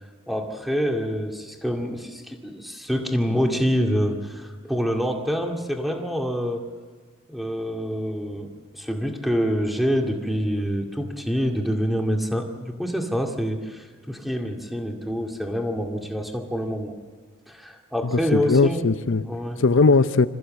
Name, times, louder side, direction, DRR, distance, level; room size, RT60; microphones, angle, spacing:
voice 1, 0.3-6.6 7.3-16.9 17.5-18.9 19.3-19.6, equal, ahead, 2 dB, 2.2 m, -26 dB
voice 2, 18.1-19.3 19.6-20.3, left 3 dB, 60° left, 12 dB, 0.7 m, -19 dB
27.0 x 15.0 x 7.7 m, 1.5 s
head